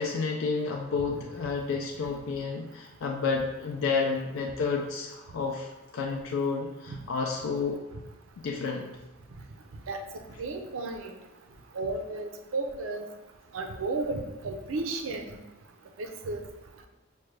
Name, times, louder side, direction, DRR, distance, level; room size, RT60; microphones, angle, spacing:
voice 1, 0.0-7.8 8.4-8.9, left 4 dB, 75° left, 0 dB, 0.3 m, -30 dB
voice 2, 10.4-11.1 11.7-13.1 13.5-15.4 16.0-16.4, right 3 dB, 80° right, 5 dB, 0.5 m, -33 dB
4.9 x 2.2 x 3.1 m, 1.1 s
head